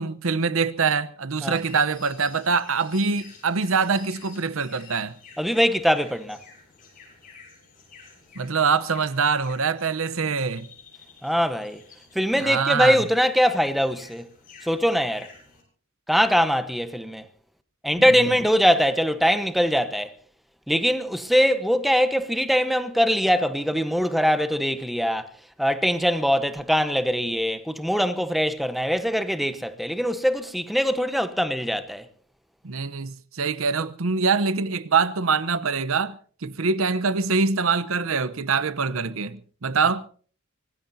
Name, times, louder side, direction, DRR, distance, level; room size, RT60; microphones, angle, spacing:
voice 1, 0.0-5.1 8.4-10.7 12.4-13.0 32.6-40.0, right 5 dB, 70° right, 0.8 m, -24 dB
sound 1, 1.3-15.6, left 5 dB, 40° left, 7.4 m, -50 dB
voice 2, 5.4-6.4 11.2-11.8 12.1-14.3 14.6-15.3 16.1-17.3 17.8-20.1 20.7-25.3 25.6-32.1, equal, ahead, 1.0 m, -22 dB
25.0 x 18.5 x 2.7 m
head